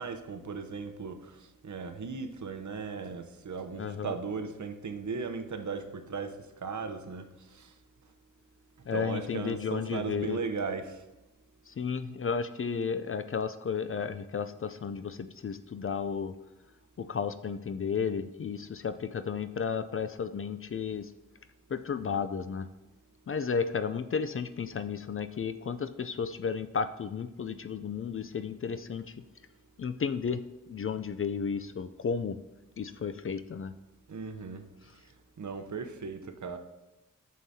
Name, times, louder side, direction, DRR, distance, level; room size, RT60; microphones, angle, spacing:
voice 1, 0.0-7.7 8.9-11.0 34.1-34.6 35.4-36.6, right 5 dB, 60° right, 8 dB, 0.8 m, -37 dB
voice 2, 3.8-4.1 8.9-10.4 11.8-16.3 17.0-21.1 21.7-22.7 23.3-29.0 29.8-30.4 30.7-32.4 32.8-33.7, left 6 dB, 40° left, 11 dB, 0.4 m, -33 dB
9.2 x 6.5 x 2.8 m, 0.99 s
wide cardioid pair, 80°, 34 cm